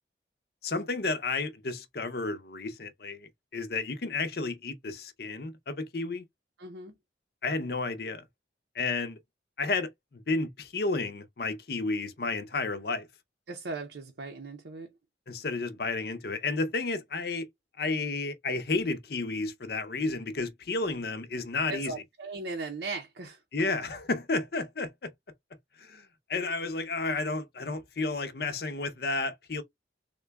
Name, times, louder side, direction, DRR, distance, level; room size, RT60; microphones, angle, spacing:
voice 1, 0.6-6.2 7.4-8.2 8.7-9.2 9.6-13.1 15.3-17.5 17.8-22.0 23.5-25.1 25.8-29.6, left 3 dB, 55° left, 0.6 m, -32 dB
voice 2, 6.6-6.9 13.5-14.9 21.7-23.4, right 3 dB, 75° right, 0.7 m, -38 dB
3.7 x 2.2 x 3.3 m
head